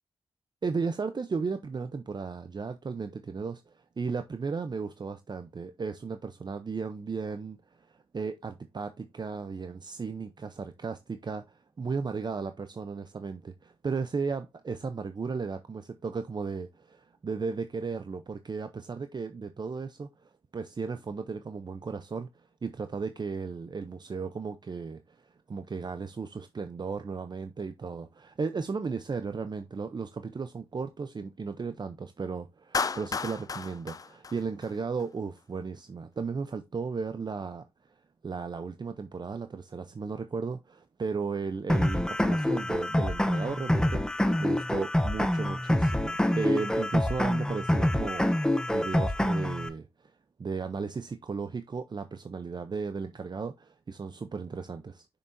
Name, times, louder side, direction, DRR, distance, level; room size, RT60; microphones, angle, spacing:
voice 1, 0.6-7.6 7.9-22.3 22.6-37.6 38.2-49.9 50.4-55.1, right 5 dB, 45° right, 0.6 m, -35 dB
Clapping, 32.7-35.0, left 5 dB, 35° left, 0.3 m, -33 dB
sound 1, 41.7-49.7, left 1 dB, 5° left, 0.9 m, -26 dB
6.8 x 5.7 x 2.6 m
cardioid pair, 60°, 10 cm